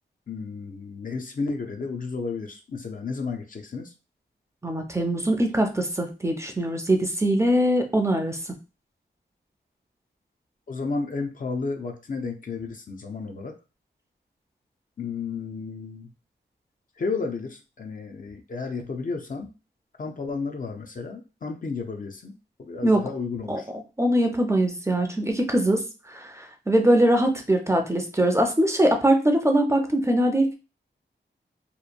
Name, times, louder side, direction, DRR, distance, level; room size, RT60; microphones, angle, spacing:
voice 1, 0.3-3.9 10.7-13.5 15.0-16.1 17.0-19.5 20.0-23.7, left 4 dB, 45° left, 3 dB, 0.5 m, -32 dB
voice 2, 4.6-8.5 22.8-23.0 23.5-23.6 24.0-30.6, right 1 dB, 15° right, 4 dB, 0.4 m, -22 dB
2.9 x 2.1 x 2.4 m, 0.30 s
wide cardioid pair, 90°, 19 cm